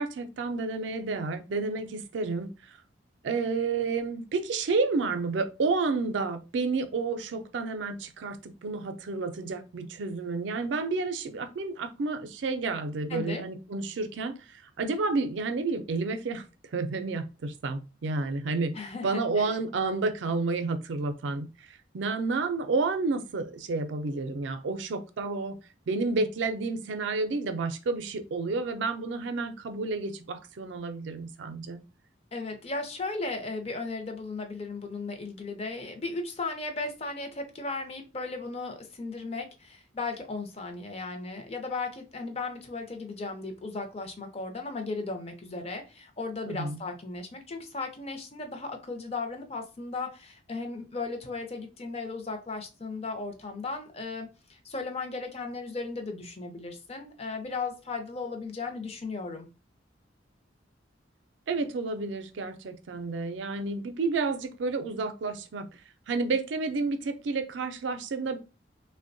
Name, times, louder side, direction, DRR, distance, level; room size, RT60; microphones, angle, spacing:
voice 1, 0.0-2.8 3.2-16.4 16.7-25.6 25.9-31.8 46.5-46.8 61.5-65.7 66.1-68.4, right 3 dB, 80° right, 0.4 m, -30 dB
voice 2, 13.1-13.4 18.7-19.5 32.3-59.5, left 3 dB, 35° left, 0.5 m, -36 dB
3.4 x 2.1 x 2.5 m
head